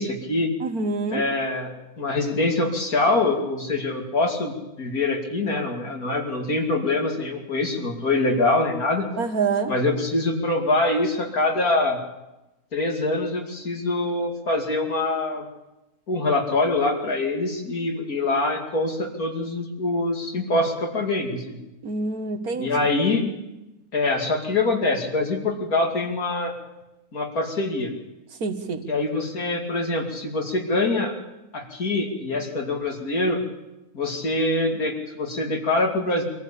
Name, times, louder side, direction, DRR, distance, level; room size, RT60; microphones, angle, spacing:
voice 1, 0.0-0.5 1.1-9.1 9.7-12.0 12.7-15.5 16.1-21.6 22.5-23.3 23.9-26.5 27.1-27.9 28.9-31.1 31.5-33.4 33.9-36.2, left 2 dB, 80° left, 2 dB, 3.1 m, -24 dB
voice 2, 0.6-1.2 9.2-9.7 21.8-22.7 28.4-28.8, right 4 dB, 85° right, 6 dB, 2.0 m, -26 dB
23.5 x 15.0 x 8.6 m, 0.99 s
omnidirectional pair, 1.5 m